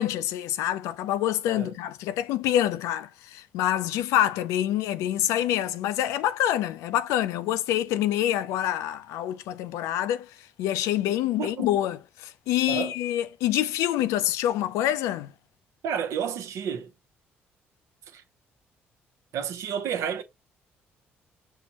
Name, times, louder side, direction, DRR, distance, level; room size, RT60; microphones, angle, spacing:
voice 1, 0.0-10.3 10.6-15.3, left 12 dB, 85° left, 0.3 m, -26 dB
voice 2, 15.8-16.9 18.1-18.2 19.3-20.2, right 8 dB, 75° right, 0.6 m, -30 dB
5.5 x 2.1 x 2.8 m
supercardioid pair, 65°, 5 cm